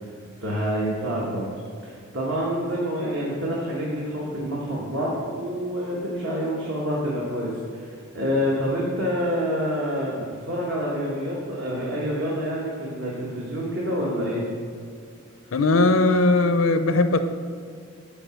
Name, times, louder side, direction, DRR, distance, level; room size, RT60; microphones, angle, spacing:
voice 1, 0.4-1.4 1.8-14.4, equal, 60° right, -5 dB, 1.3 m, -27 dB
voice 2, 15.5-17.2, left 2 dB, 80° left, 9 dB, 0.5 m, -19 dB
9.0 x 4.8 x 5.7 m, 2.1 s
head